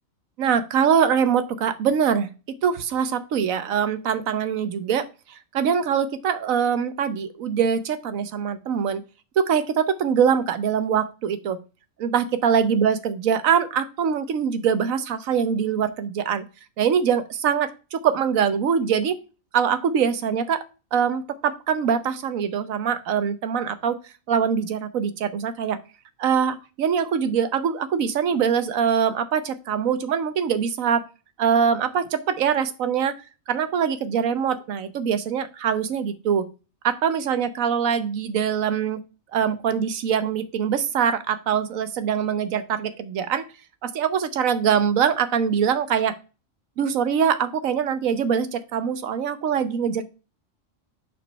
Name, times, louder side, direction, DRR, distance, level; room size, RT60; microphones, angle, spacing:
voice 1, 0.4-2.3 2.6-9.0 9.4-11.6 12.0-16.4 16.8-19.2 19.5-20.6 20.9-24.0 24.3-25.8 26.2-31.1 31.4-33.1 33.5-36.5 36.8-39.0 39.3-43.4 43.8-46.2 46.8-50.0, right 7 dB, 85° right, 11 dB, 1.2 m, -23 dB
5.5 x 4.5 x 5.3 m, 0.32 s
omnidirectional pair, 1.4 m